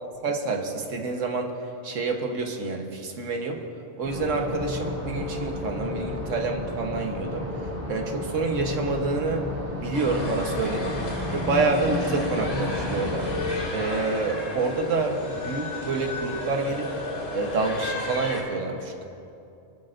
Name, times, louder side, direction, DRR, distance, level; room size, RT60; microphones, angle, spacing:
voice 1, 0.0-1.5 1.8-3.6 4.0-7.5 7.9-9.5 9.8-11.0 11.3-13.3 13.7-16.9 17.3-19.0, right 3 dB, 85° right, 2 dB, 1.5 m, -28 dB
sound 1, 4.0-13.7, left 2 dB, 10° right, 3.2 m, -32 dB
sound 2, 9.9-18.4, left 2 dB, 85° left, 2.9 m, -33 dB
22.0 x 12.5 x 2.6 m, 2.6 s
omnidirectional pair, 1.3 m